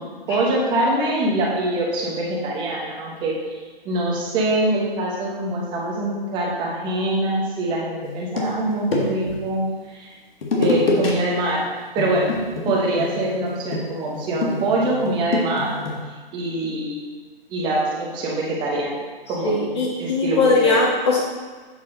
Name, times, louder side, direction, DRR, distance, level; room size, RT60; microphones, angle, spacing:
voice 1, 0.0-10.2 10.5-11.6 11.9-12.3 12.6-15.8 16.3-17.1 17.5-19.0 19.3-20.8, right 1 dB, 15° right, -3 dB, 1.1 m, -24 dB
sound 1, 8.0-9.4 10.4-11.1 11.4-11.6 12.0-16.0, left 2 dB, 70° left, 1.8 m, -25 dB
voice 2, 19.4-21.2, left 3 dB, 30° left, -1 dB, 0.6 m, -19 dB
8.0 x 5.8 x 3.8 m, 1.4 s
hypercardioid pair, 150°, 30 cm